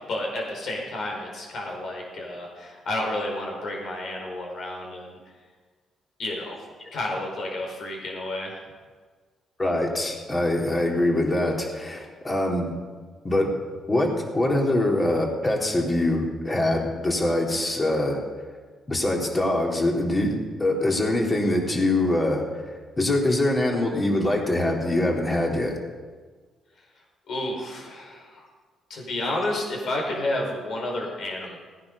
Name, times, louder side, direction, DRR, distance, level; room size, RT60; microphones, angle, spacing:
voice 1, 0.1-5.2 6.2-8.6 27.3-28.4 28.9-31.6, left 1 dB, 65° left, 0 dB, 5.1 m, -31 dB
voice 2, 9.6-12.7 13.2-13.5 13.9-18.2 18.9-25.8, left 1 dB, 25° left, -1 dB, 3.3 m, -24 dB
18.0 x 10.0 x 5.5 m, 1.5 s
cardioid pair, 90°, 0 cm